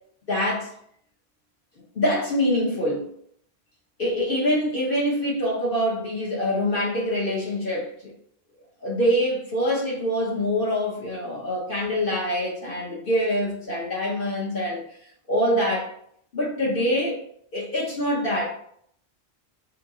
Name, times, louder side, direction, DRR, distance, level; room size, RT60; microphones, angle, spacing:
voice 1, 0.3-0.7 1.9-3.1 4.0-7.9 8.8-14.8 15.3-15.9 16.3-17.2 17.5-18.6, equal, 60° left, 1.1 m, -25 dB
3.5 x 2.9 x 3.6 m
omnidirectional pair, 1.1 m